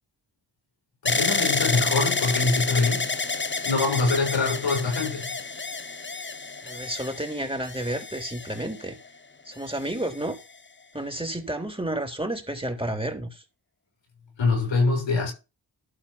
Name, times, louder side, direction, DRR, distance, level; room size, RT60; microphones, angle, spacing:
voice 1, 1.0-3.1 3.6-5.4 14.4-15.3, left 3 dB, 85° left, 6.5 m, -24 dB
sound 1, 1.1-9.1 9.8-10.4, left 3 dB, 25° left, 1.1 m, -29 dB
voice 2, 6.6-9.0 9.5-10.4 10.9-13.4, right 1 dB, 10° right, 3.5 m, -31 dB
12.0 x 4.5 x 5.8 m
cardioid pair, 45°, 44 cm